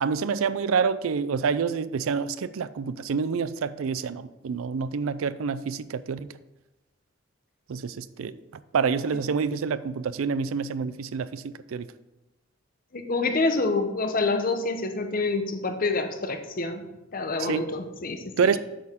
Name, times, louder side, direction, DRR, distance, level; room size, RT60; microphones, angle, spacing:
voice 1, 0.0-6.3 7.7-8.4 8.7-11.9 17.4-17.7 18.4-18.6, right 5 dB, 85° right, 15 dB, 0.4 m, -27 dB
voice 2, 12.9-16.9 17.1-18.5, left 3 dB, 45° left, 7 dB, 0.8 m, -27 dB
8.5 x 6.5 x 3.6 m, 1.0 s
head